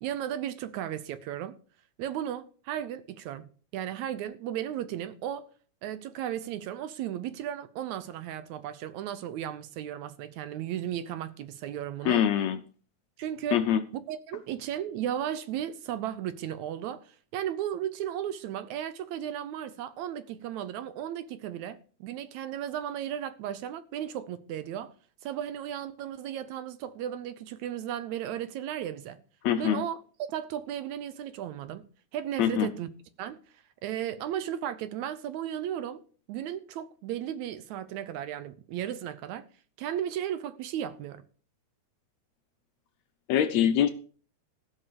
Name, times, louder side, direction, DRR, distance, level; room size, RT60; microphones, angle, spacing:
voice 1, 0.0-1.6 2.0-5.5 5.8-12.2 13.2-13.6 14.1-24.9 25.2-29.2 29.6-31.8 32.1-32.9 33.2-33.4 33.8-36.0 36.3-39.5 39.8-41.2, right 10 dB, 75° right, 1.9 m, -35 dB
voice 2, 12.0-12.6 13.5-13.8 29.4-29.8 32.4-32.7 43.3-43.9, left 10 dB, 75° left, 1.7 m, -24 dB
15.5 x 5.9 x 6.8 m
omnidirectional pair, 3.6 m